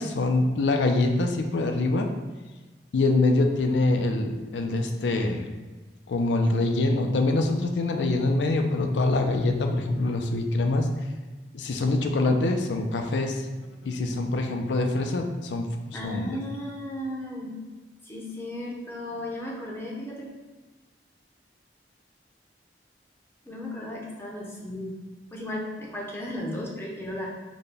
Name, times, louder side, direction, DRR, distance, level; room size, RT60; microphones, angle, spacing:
voice 1, 0.0-2.1 2.9-5.5 6.1-10.9 11.5-13.4 13.8-16.3, left 2 dB, 80° left, 4 dB, 0.4 m, -24 dB
voice 2, 15.9-17.6 18.0-20.3 23.5-24.9 25.3-27.3, left 1 dB, 15° left, -3 dB, 0.6 m, -35 dB
4.1 x 2.1 x 3.3 m, 1.3 s
head